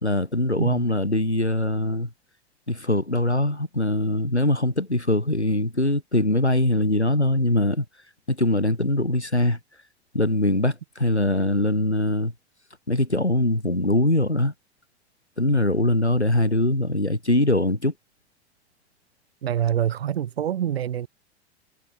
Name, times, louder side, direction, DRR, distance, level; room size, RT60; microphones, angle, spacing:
voice 1, 0.0-2.1 2.7-7.8 8.3-9.6 10.1-12.3 12.9-14.5 15.4-17.9, left 1 dB, 90° left, 4.0 m, -22 dB
voice 2, 19.4-21.1, right 10 dB, 65° right, 4.7 m, -26 dB
figure-of-eight pair, 90°, 33 cm